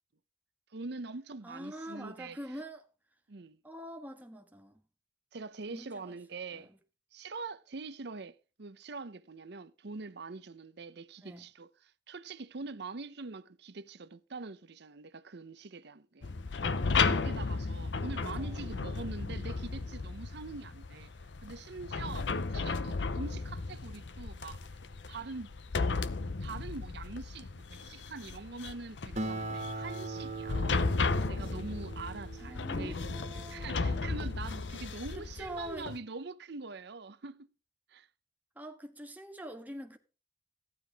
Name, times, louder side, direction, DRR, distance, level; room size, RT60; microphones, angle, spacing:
voice 1, 0.7-2.6 3.3-3.6 5.3-6.7 7.1-11.7 12.1-16.3 16.6-21.1 21.4-24.6 25.1-25.5 26.4-30.6 31.3-37.5 37.9-38.1, right 3 dB, 65° right, 0.8 m, -44 dB
voice 2, 1.4-2.8 3.6-4.8 5.7-6.2 6.5-6.7 11.2-11.5 18.2-18.6 32.4-34.3 35.1-35.9 38.5-40.0, equal, 10° right, 1.5 m, -45 dB
sound 1, 16.2-36.0, left 4 dB, 70° left, 0.7 m, -34 dB
Acoustic guitar, 29.2-34.0, right 2 dB, 40° right, 2.0 m, -41 dB
14.5 x 10.0 x 3.6 m
head